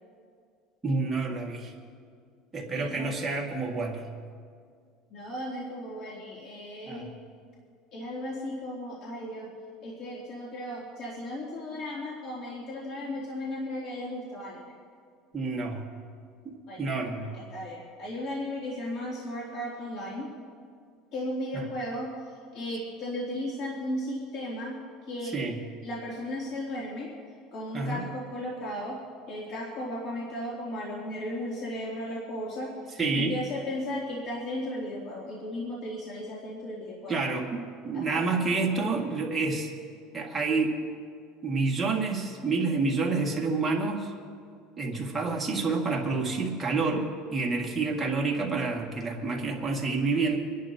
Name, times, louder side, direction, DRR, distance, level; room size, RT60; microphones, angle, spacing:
voice 1, 0.8-1.7 2.5-4.1 6.9-7.1 15.3-15.8 16.4-17.4 25.3-25.6 27.7-28.1 33.0-33.4 37.1-37.5 37.8-39.7 40.1-40.7 41.4-44.2 44.8-50.4, right 3 dB, 15° right, -2 dB, 2.0 m, -28 dB
voice 2, 2.7-3.3 5.1-7.1 7.9-9.5 9.8-14.7 16.7-16.9 17.3-20.3 21.1-25.4 25.8-27.1 27.5-29.0 29.3-37.2 37.9-38.3, left 1 dB, 50° left, -5 dB, 2.8 m, -35 dB
26.5 x 11.5 x 2.9 m, 2.2 s
cardioid pair, 140°, 0 cm